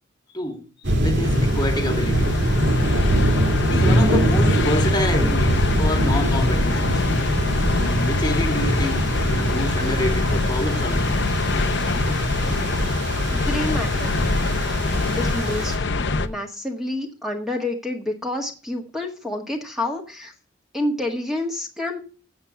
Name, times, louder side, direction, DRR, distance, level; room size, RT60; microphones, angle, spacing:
sound 1, 0.8-15.8, right 1 dB, 65° right, 2.4 m, -22 dB
voice 1, 1.0-2.4 3.7-7.0 7.7-11.1, left 1 dB, 20° left, 1.6 m, -28 dB
sound 2, 1.2-16.3, left 3 dB, 65° left, 0.8 m, -25 dB
voice 2, 13.3-14.2 15.2-20.3 20.7-22.0, left 1 dB, ahead, 1.6 m, -28 dB
8.1 x 7.3 x 6.7 m
head